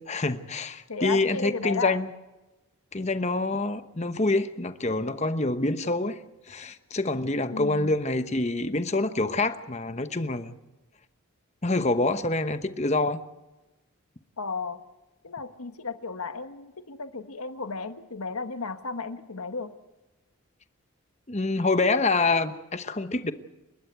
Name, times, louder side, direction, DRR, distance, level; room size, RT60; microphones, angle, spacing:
voice 1, 0.0-2.1 2.9-6.2 6.5-10.6 11.6-13.2 21.3-23.3, left 2 dB, 30° left, 1.0 m, -26 dB
voice 2, 0.9-2.0 7.5-7.9 14.4-14.8 15.2-19.7, left 4 dB, 90° left, 1.2 m, -34 dB
29.5 x 13.0 x 8.1 m
head